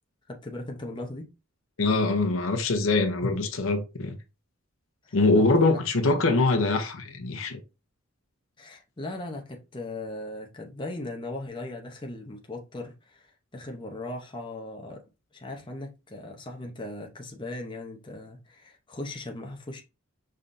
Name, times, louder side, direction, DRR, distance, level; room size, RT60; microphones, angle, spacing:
voice 1, 0.3-1.3 5.0-5.7 8.6-15.0 15.3-19.8, left 2 dB, 25° left, 0.7 m, -38 dB
voice 2, 1.8-4.2 5.1-7.6, left 3 dB, 75° left, 0.8 m, -23 dB
5.4 x 3.3 x 2.6 m
head